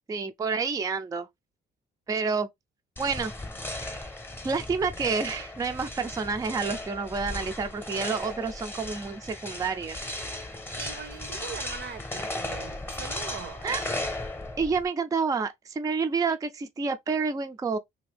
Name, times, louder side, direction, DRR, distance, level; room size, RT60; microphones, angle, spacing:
voice 1, 0.1-1.3 2.1-2.5 3.0-3.3 4.4-10.0 13.6-13.8 14.6-17.8, right 5 dB, 20° right, 0.4 m, -29 dB
sound 1, 3.0-14.8, left 1 dB, 10° left, 0.8 m, -36 dB
voice 2, 10.8-13.8, right 7 dB, 60° right, 0.6 m, -41 dB
2.7 x 2.5 x 3.3 m
cardioid pair, 90°, 20 cm